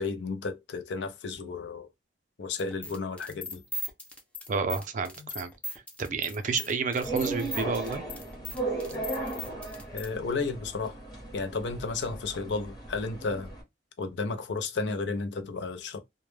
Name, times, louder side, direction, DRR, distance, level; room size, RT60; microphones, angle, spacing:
voice 1, 0.0-1.9 2.4-3.6 9.9-11.0 11.3-13.5 14.0-16.0, left 4 dB, 70° left, 0.5 m, -33 dB
sound 1, 2.6-10.1, left 1 dB, 5° left, 0.5 m, -39 dB
voice 2, 4.5-5.5 6.0-8.0, right 4 dB, 45° right, 0.4 m, -30 dB
sound 2, 7.0-13.6, right 2 dB, 25° left, 0.9 m, -36 dB
2.1 x 2.1 x 3.1 m
head